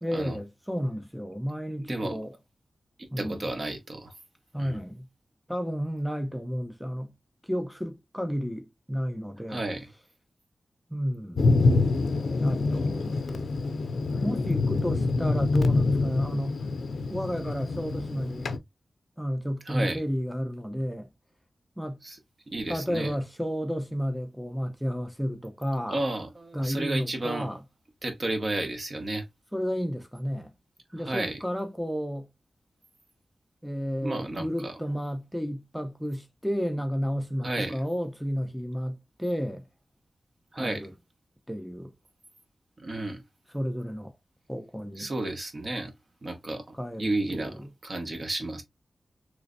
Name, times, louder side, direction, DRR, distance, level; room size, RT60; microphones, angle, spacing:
voice 1, 0.0-2.3 3.1-3.5 4.5-5.1 5.5-7.1 7.4-9.6 10.9-11.6 12.4-13.5 14.2-16.6 16.9-18.5 19.2-21.1 21.8-22.0 22.7-26.0 26.5-27.6 29.5-30.5 30.9-32.3 33.6-39.7 40.6-40.9 41.5-41.9 43.5-44.1 44.5-45.1 46.7-47.7, equal, ahead, 0.5 m, -32 dB
voice 2, 1.8-2.2 3.0-4.1 4.6-4.8 9.5-9.9 19.7-20.0 22.0-22.2 22.5-23.1 25.9-27.6 28.0-29.2 31.0-31.4 34.0-34.8 37.4-37.8 40.5-40.8 42.8-43.2 45.0-45.9 46.2-48.6, right 2 dB, 45° right, 0.9 m, -32 dB
Thunder, 11.4-18.6, left 3 dB, 85° left, 0.4 m, -26 dB
3.3 x 3.1 x 2.4 m
wide cardioid pair, 100°, 0 cm